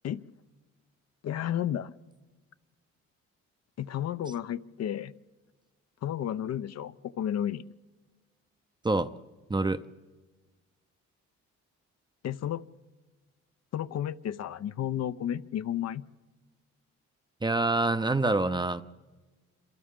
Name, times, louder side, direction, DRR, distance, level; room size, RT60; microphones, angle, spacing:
voice 1, 1.2-1.9 3.8-5.1 6.0-7.6 12.2-12.6 13.7-16.0, left 10 dB, 60° left, 12 dB, 0.7 m, -32 dB
voice 2, 9.5-9.8 17.4-18.8, right 2 dB, 15° right, 12 dB, 0.6 m, -26 dB
26.5 x 26.5 x 3.7 m, 1.3 s
cardioid pair, 90°, 30 cm